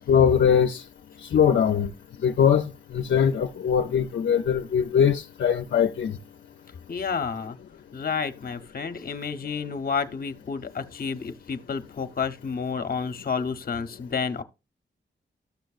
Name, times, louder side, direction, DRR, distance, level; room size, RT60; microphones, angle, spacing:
voice 1, 0.1-0.8 1.3-1.9 2.2-6.1, left 7 dB, 75° left, 0.5 m, -21 dB
voice 2, 6.9-7.6 7.9-14.4, left 5 dB, 50° left, 0.8 m, -30 dB
13.0 x 6.4 x 2.4 m
wide cardioid pair, 95°, 19 cm